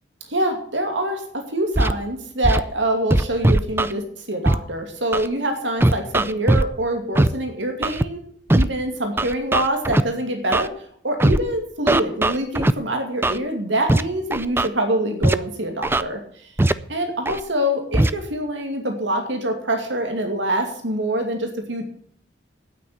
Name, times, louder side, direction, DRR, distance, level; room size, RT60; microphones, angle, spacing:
voice 1, 0.3-8.2 8.5-10.7 11.0-16.5 16.9-21.8, right 1 dB, 85° right, 4 dB, 2.4 m, -25 dB
Scratching (performance technique), 1.8-1.9 2.4-2.6 3.1-3.9 4.5-4.6 5.1-5.3 5.8-6.7 7.2-7.3 7.8-8.0 8.5-8.7 9.2-10.0 10.5-10.7 11.2-11.4 11.9-12.7 13.2-13.4 13.9-14.0 14.3-14.7 15.2-15.4 15.8-16.0 16.6-16.7 17.3-17.4 17.9-18.1, right 1 dB, 10° right, 0.4 m, -18 dB
9.3 x 8.8 x 8.5 m, 0.63 s
head